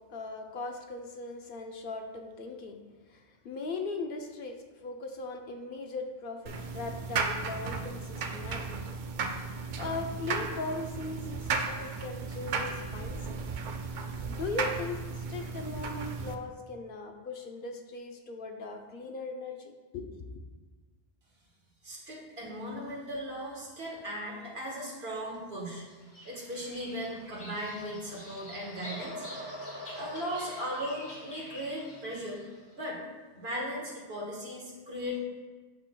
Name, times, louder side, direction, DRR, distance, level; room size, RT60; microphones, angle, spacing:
voice 1, 0.1-2.8 3.1-4.6 4.8-9.0 9.8-13.4 14.2-15.0 15.3-20.3, left 3 dB, 65° left, 4 dB, 0.8 m, -39 dB
sound 1, 6.5-16.3, right 4 dB, 60° right, 0.6 m, -35 dB
voice 2, 21.8-25.9 26.2-29.2 30.0-32.4 32.7-33.0 33.3-35.2, equal, 80° right, -3 dB, 1.7 m, -37 dB
Bird vocalization bird call bird song, 25.9-32.5, left 1 dB, 85° left, 1.9 m, -44 dB
8.5 x 5.9 x 2.2 m, 1.4 s
omnidirectional pair, 1.0 m